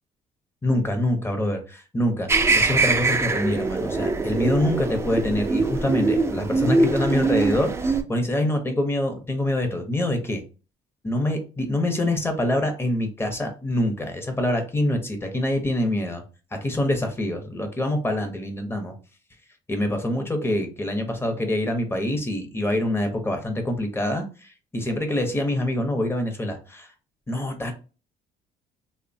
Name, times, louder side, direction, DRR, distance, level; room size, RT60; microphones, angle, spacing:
voice 1, 0.6-2.3 2.6-10.4 11.0-16.2 16.5-18.9 19.7-26.9 27.3-27.7, left 1 dB, 15° left, 5 dB, 0.6 m, -25 dB
sound 1, 2.3-8.0, right 3 dB, 15° right, 0.3 m, -22 dB
3.1 x 2.1 x 2.6 m, 0.34 s
cardioid pair, 110°, 17 cm